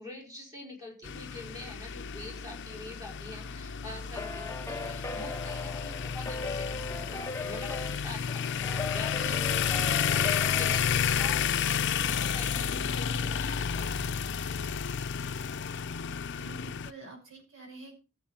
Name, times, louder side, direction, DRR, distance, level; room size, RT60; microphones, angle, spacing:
voice 1, 0.0-14.3, left 2 dB, 20° right, -1 dB, 5.1 m, -46 dB
sound 1, 1.0-16.9, left 7 dB, 60° left, 0.5 m, -31 dB
sound 2, 4.1-10.8, left 3 dB, 15° left, 0.6 m, -38 dB
voice 2, 16.2-18.0, right 3 dB, 70° right, 1 dB, 5.9 m, -48 dB
15.0 x 7.7 x 4.3 m, 0.32 s
head